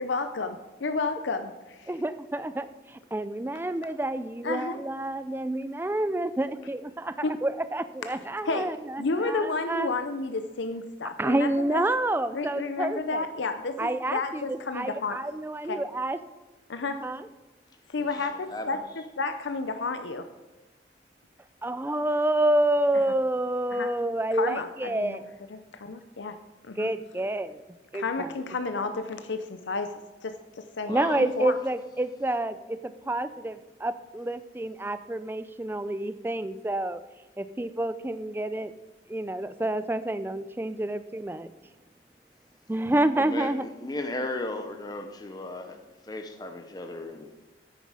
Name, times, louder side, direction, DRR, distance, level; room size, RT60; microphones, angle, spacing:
voice 1, 0.0-1.9 4.4-4.8 7.2-7.3 8.4-8.7 9.0-11.8 12.3-15.2 15.7-15.8 16.7-17.1 17.9-18.8 19.2-20.3 23.7-23.9 24.3-25.2 25.5-26.4 26.7-26.9 27.9-31.5, left 3 dB, 80° left, 0.6 m, -31 dB
voice 2, 1.9-10.0 11.2-13.2 13.8-16.2 17.0-17.3 21.6-25.2 26.8-28.3 30.9-37.0 37.4-38.7 39.1-41.5 42.7-43.7, right 1 dB, 10° right, 0.4 m, -28 dB
voice 3, 18.0-18.8 30.9-31.2 43.1-47.3, left 2 dB, 20° left, 0.7 m, -36 dB
9.5 x 9.4 x 4.9 m
head